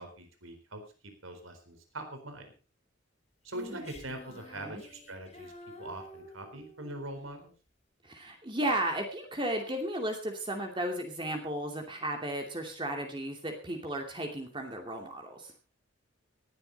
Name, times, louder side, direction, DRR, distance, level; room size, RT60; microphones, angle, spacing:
voice 1, 0.0-2.5 3.4-5.5 5.8-7.5, right 1 dB, 85° right, 6 dB, 4.4 m, -43 dB
Female singing, 3.5-7.0, left 1 dB, 30° left, 3.9 m, -49 dB
voice 2, 8.0-15.5, right 1 dB, 25° right, 3 dB, 2.6 m, -34 dB
18.5 x 12.0 x 4.1 m, 0.33 s
head